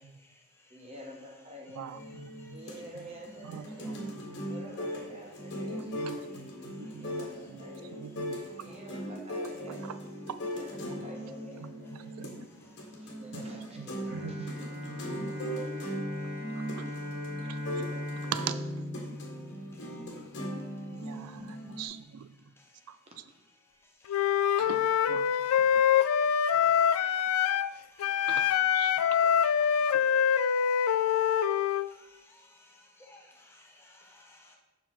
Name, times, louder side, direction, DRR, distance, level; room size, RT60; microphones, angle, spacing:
voice 1, 0.0-0.9 1.7-2.8 3.7-4.6 4.9-7.7 8.3-8.8 11.9-13.2 14.9-18.3 19.0-21.8 22.3-23.1 23.6-24.7 25.2-28.5 28.9-34.6, left 2 dB, 10° left, 0 dB, 0.9 m, -62 dB
voice 2, 0.7-1.9 2.5-4.0 4.5-6.2 6.8-8.0 8.6-9.8 10.4-12.3 13.0-14.9, equal, 30° right, 0 dB, 1.2 m, -48 dB
voice 3, 1.8-2.6 3.4-4.4 5.9-7.6 8.0-8.7 9.7-10.0 11.6-12.5 13.3-13.5 13.8-14.5 14.8-15.3 16.6-17.0 17.4-18.8 20.9-22.4 22.9-23.0 24.6-25.9 28.3-29.0 29.6-29.7 29.9-30.0, right 8 dB, 85° right, 13 dB, 0.4 m, -43 dB
sound 1, 1.9-21.9, equal, 50° left, 1.5 m, -39 dB
Bowed string instrument, 14.1-20.3, left 1 dB, 45° right, 1.5 m, -39 dB
Wind instrument woodwind instrument, 24.1-27.7 28.0-31.9, left 8 dB, 75° left, 0.3 m, -25 dB
7.0 x 5.8 x 4.4 m, 1.0 s
head